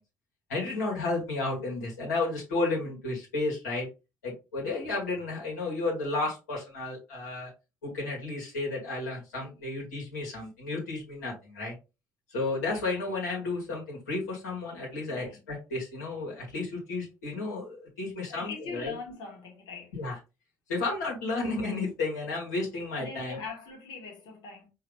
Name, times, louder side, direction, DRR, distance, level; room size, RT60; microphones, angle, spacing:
voice 1, 0.5-3.9 4.2-7.5 7.8-11.7 12.3-18.9 19.9-20.2 20.7-23.4, left 3 dB, 85° left, 1.7 m, -32 dB
voice 2, 15.0-15.4 18.3-20.0 23.0-24.7, left 4 dB, 60° left, 1.7 m, -42 dB
4.8 x 3.0 x 3.2 m
hypercardioid pair, 55°, 9 cm